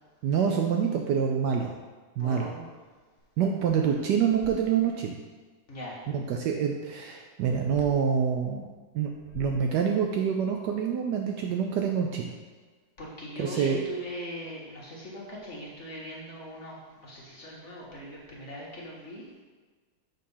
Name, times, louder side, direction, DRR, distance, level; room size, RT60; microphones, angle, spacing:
voice 1, 0.2-1.7 2.2-2.5 3.4-5.2 6.1-8.7 8.9-9.1 9.3-12.3 13.4-13.8, right 7 dB, 70° right, 2 dB, 1.1 m, -26 dB
voice 2, 2.2-2.7 5.7-6.0 13.0-19.4, equal, 40° left, -4 dB, 1.5 m, -40 dB
sound 1, 3.2-3.3 3.6-5.1 7.7-8.1 9.0-10.2, left 3 dB, 65° left, 1.0 m, -46 dB
6.6 x 3.9 x 5.5 m, 1.4 s
omnidirectional pair, 2.1 m